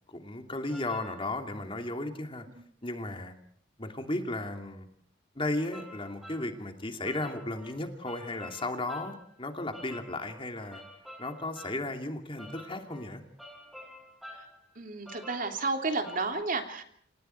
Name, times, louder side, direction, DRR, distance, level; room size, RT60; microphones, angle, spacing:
voice 1, 0.0-2.5 2.8-3.3 3.8-4.9 5.3-10.8 11.2-13.2, left 2 dB, 25° left, 5 dB, 2.7 m, -35 dB
sound 1, 0.7-1.2 5.7-6.5 7.0-9.3 9.7-11.8 12.4-14.6 15.1-16.2, equal, ahead, 7.9 m, -49 dB
voice 2, 14.7-16.8, right 3 dB, 45° right, 5 dB, 3.1 m, -32 dB
29.0 x 28.0 x 4.6 m, 0.62 s
head